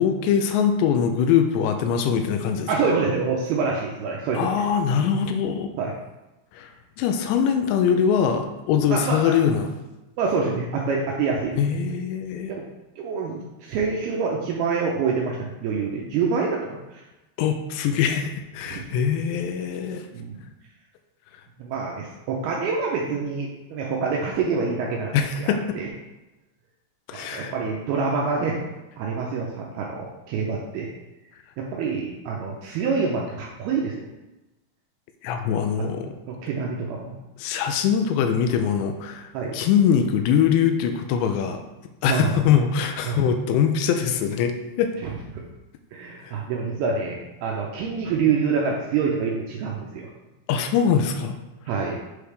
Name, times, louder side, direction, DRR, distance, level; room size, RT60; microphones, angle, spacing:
voice 1, 0.0-2.7 4.3-5.7 6.5-6.7 7.0-9.7 11.6-12.5 17.4-20.0 25.1-25.8 27.1-27.5 35.2-36.1 37.4-41.6 42.0-44.9 46.2-46.4 50.5-51.4, left 7 dB, 80° left, 6 dB, 2.7 m, -22 dB
voice 2, 2.7-4.5 5.8-5.9 8.9-9.3 10.2-11.6 12.5-12.6 13.0-17.0 18.7-18.8 20.1-20.4 21.6-25.9 27.1-28.6 29.0-30.9 31.6-34.1 35.8-35.9 36.3-37.2 39.3-39.6 42.1-42.4 43.1-43.2 45.0-45.5 45.9-50.1 51.7-52.0, right 5 dB, 85° right, -2 dB, 2.3 m, -26 dB
7.8 x 5.0 x 3.3 m, 1.0 s
omnidirectional pair, 5.2 m